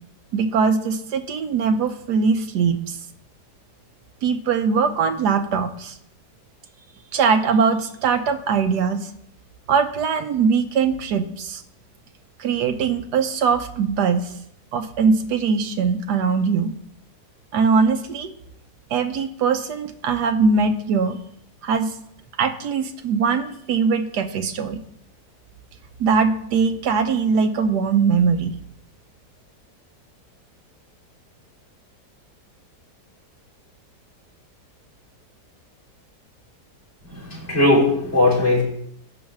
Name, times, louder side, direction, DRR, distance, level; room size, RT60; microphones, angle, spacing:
voice 1, 0.3-3.0 4.2-6.0 7.1-9.1 9.7-11.6 12.4-14.3 14.7-16.7 17.5-18.3 18.9-21.2 21.6-21.9 22.4-24.8 26.0-28.5, right 5 dB, 85° right, 8 dB, 1.4 m, -21 dB
voice 2, 37.1-38.6, left 2 dB, 40° left, -4 dB, 4.0 m, -18 dB
11.5 x 4.0 x 7.2 m, 0.71 s
omnidirectional pair, 1.7 m